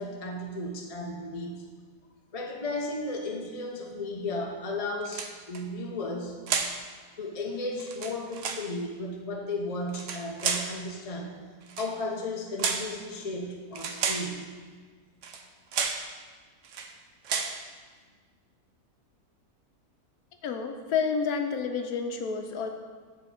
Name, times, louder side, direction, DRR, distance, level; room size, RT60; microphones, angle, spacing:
voice 1, 0.0-1.6 2.3-6.4 7.2-11.3 11.8-14.4, left 2 dB, 35° left, 0 dB, 0.6 m, -34 dB
sound 1, 5.0-5.6 6.5-6.8 7.8-8.7 9.9-10.7 11.7-11.9 12.6-12.9 13.7-14.3 15.2-15.4 15.7-16.1 16.6-16.9 17.2-17.6, right 6 dB, 65° right, 0.9 m, -31 dB
voice 2, 20.4-22.7, left 6 dB, 80° left, 5 dB, 1.2 m, -29 dB
7.6 x 4.5 x 6.5 m, 1.5 s
omnidirectional pair, 1.6 m